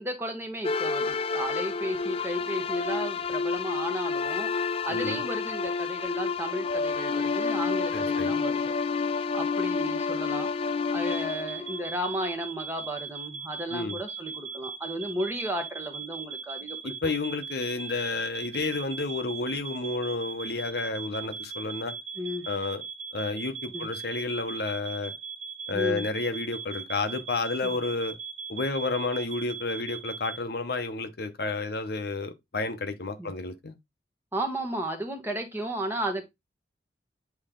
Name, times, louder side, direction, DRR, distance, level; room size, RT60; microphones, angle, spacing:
voice 1, 0.0-4.5 4.8-8.7 9.3-10.5 10.9-16.9 22.2-22.5 23.7-23.9 25.7-26.1 27.6-27.7 33.2-33.3 34.3-36.2, equal, 10° right, 1.2 m, -34 dB
sound 1, 0.6-12.5, left 4 dB, 30° left, 0.4 m, -29 dB
voice 2, 4.9-5.2 7.9-8.3 13.7-14.0 16.8-21.9 22.5-22.8 23.1-25.1 25.7-28.2 28.5-33.8, left 3 dB, 55° left, 0.9 m, -31 dB
sound 2, 11.1-30.4, right 5 dB, 40° right, 1.5 m, -39 dB
8.5 x 3.1 x 3.7 m
head